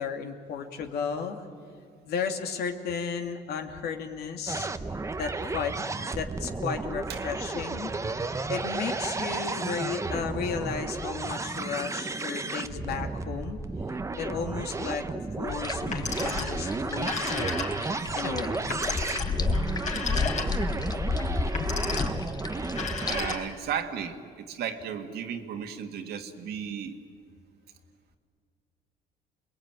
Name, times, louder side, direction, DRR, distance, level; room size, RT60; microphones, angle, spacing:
voice 1, 0.0-1.4 2.1-4.7 5.2-5.7 6.1-7.9 8.5-13.6 14.2-17.5 18.1-18.6, left 6 dB, 70° left, 5 dB, 2.6 m, -34 dB
sound 1, 4.5-23.4, right 3 dB, 15° right, 1.0 m, -33 dB
sound 2, 15.5-23.3, left 4 dB, 25° left, 1.2 m, -32 dB
Telephone, 15.8-16.6 16.9-18.0 18.7-20.8 21.4-22.2 22.7-23.7, left 4 dB, 45° left, 4.1 m, -34 dB
voice 2, 23.1-27.0, right 8 dB, 70° right, 5 dB, 2.2 m, -34 dB
28.0 x 21.0 x 9.1 m, 2.1 s
cardioid pair, 110°, 17 cm